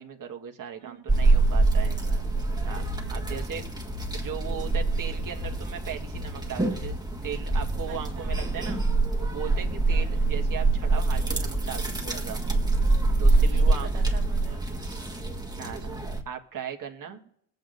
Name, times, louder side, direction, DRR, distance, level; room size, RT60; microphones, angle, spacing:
voice 1, 0.0-1.9 2.6-2.8 3.1-3.6 4.1-7.0 7.2-8.8 9.2-12.4 13.2-14.0 15.5-17.2, right 8 dB, 45° right, 3 dB, 1.6 m, -38 dB
voice 2, 0.8-1.5 1.8-2.2 3.0-3.4 7.9-8.4 9.9-10.3 11.9-12.7 13.3-15.1 15.9-16.1 17.1-17.3, right 7 dB, 75° right, 0 dB, 1.5 m, -48 dB
sound 1, 1.1-16.2, right 3 dB, 10° right, 1.6 m, -25 dB
22.5 x 8.0 x 2.6 m, 0.72 s
supercardioid pair, 55°, 46 cm